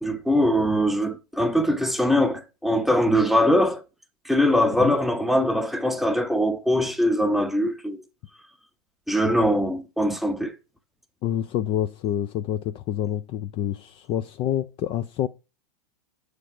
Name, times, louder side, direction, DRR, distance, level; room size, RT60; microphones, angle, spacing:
voice 1, 0.0-3.8 4.2-8.0 9.1-10.5, equal, ahead, 0.7 m, -22 dB
voice 2, 11.2-15.3, left 11 dB, 25° left, 0.3 m, -27 dB
7.6 x 3.3 x 4.9 m
figure-of-eight pair, 100°, 20 cm